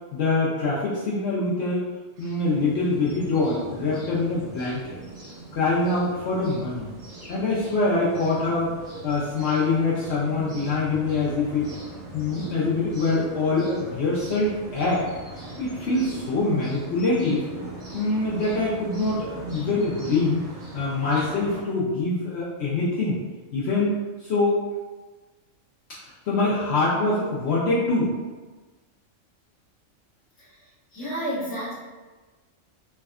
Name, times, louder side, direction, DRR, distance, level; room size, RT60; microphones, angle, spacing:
voice 1, 0.1-1.8 2.2-4.8 5.5-6.9 7.3-8.7 9.0-11.7 12.1-15.0 15.6-17.4 17.9-20.4 20.7-23.2 23.5-24.0 24.2-24.6 26.3-28.1, left 3 dB, 65° left, -7 dB, 0.8 m, -24 dB
sound 1, 2.2-21.6, right 2 dB, 55° right, 1.6 m, -40 dB
voice 2, 30.9-31.7, equal, 20° left, -8 dB, 0.7 m, -30 dB
3.4 x 2.1 x 2.3 m, 1.3 s
omnidirectional pair, 1.4 m